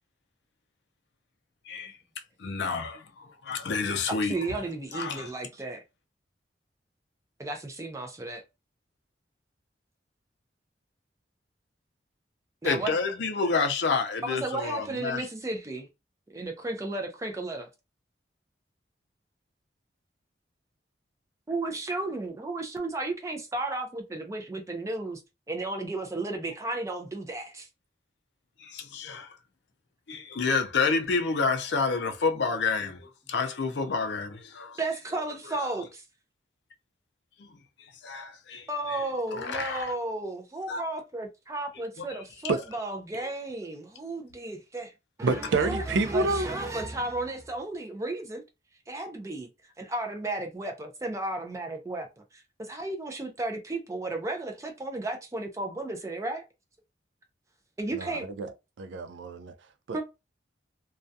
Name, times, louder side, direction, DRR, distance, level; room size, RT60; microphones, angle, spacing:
voice 1, 2.4-4.4 4.9-5.3 12.6-15.3 28.6-29.3 30.1-34.8 37.4-37.5 38.0-39.0 39.3-39.9 40.7-40.8, left 4 dB, 70° left, 0.5 m, -29 dB
voice 2, 4.2-5.8 7.4-8.4 12.6-13.0 14.2-15.9 16.3-17.7 21.5-25.2 25.5-27.7 34.8-36.0 38.7-44.9 45.2-48.4 48.9-49.5 49.8-56.5 57.8-58.3 59.9-60.0, right 2 dB, 15° right, 0.4 m, -34 dB
voice 3, 45.2-46.5 57.9-58.5 58.8-59.5 59.9-60.0, right 3 dB, 85° right, 0.4 m, -28 dB
2.3 x 2.2 x 2.6 m
head